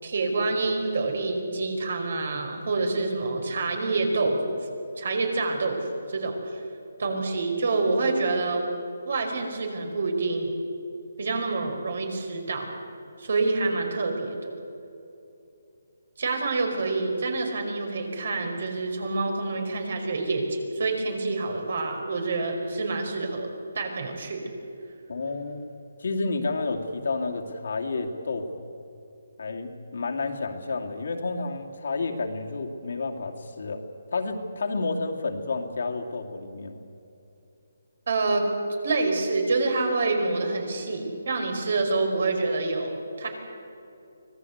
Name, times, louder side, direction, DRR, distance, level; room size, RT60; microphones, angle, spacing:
voice 1, 0.0-4.4 5.0-6.6 7.0-8.7 9.0-10.5 11.2-12.7 13.2-14.6 16.2-24.4 38.1-38.5 38.8-43.3, right 3 dB, 60° right, 4 dB, 4.9 m, -27 dB
voice 2, 25.1-25.7 26.0-28.7 29.4-33.8 34.1-36.8, left 3 dB, 65° left, 2 dB, 2.7 m, -30 dB
25.0 x 18.0 x 8.1 m, 2.8 s
hypercardioid pair, 165°, 0 cm